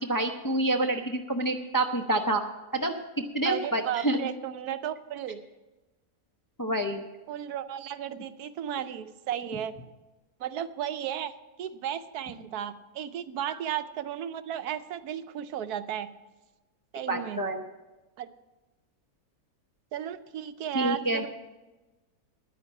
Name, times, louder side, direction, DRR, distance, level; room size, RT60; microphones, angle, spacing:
voice 1, 0.0-2.4 2.7-4.2 6.6-7.0 13.5-13.6 17.1-17.6 20.7-21.2, right 1 dB, 20° left, 3 dB, 0.5 m, -28 dB
voice 2, 3.4-5.4 7.3-9.7 10.4-11.3 11.6-16.1 16.9-17.4 18.2-18.3 19.9-21.3, right 10 dB, 80° right, 11 dB, 1.2 m, -34 dB
10.5 x 9.5 x 7.1 m, 1.1 s
omnidirectional pair, 1.6 m